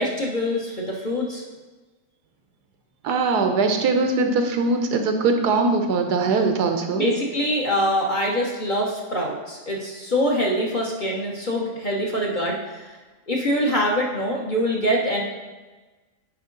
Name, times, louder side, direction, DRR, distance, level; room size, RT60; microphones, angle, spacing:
voice 1, 0.0-1.4 6.9-12.9 13.3-15.2, equal, 35° left, -2 dB, 0.9 m, -24 dB
voice 2, 3.0-7.0, right 3 dB, 85° right, 5 dB, 1.4 m, -21 dB
9.1 x 5.0 x 3.8 m, 1.2 s
omnidirectional pair, 1.7 m